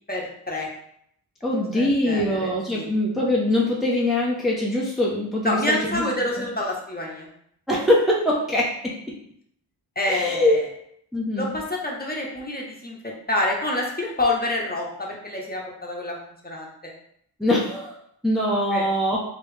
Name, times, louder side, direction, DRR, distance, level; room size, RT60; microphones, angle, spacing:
voice 1, 0.1-0.7 1.5-2.5 2.7-2.9 5.4-7.3 10.0-10.6 11.4-16.2 16.4-16.9 18.7-18.9, left 1 dB, 20° left, -2 dB, 1.0 m, -27 dB
voice 2, 1.4-6.0 6.4-6.5 7.7-9.2 10.1-10.7 11.1-11.5 17.4-17.9 18.2-19.2, left 1 dB, ahead, -4 dB, 0.8 m, -23 dB
3.0 x 3.0 x 3.3 m, 0.70 s
cardioid pair, 45°, 42 cm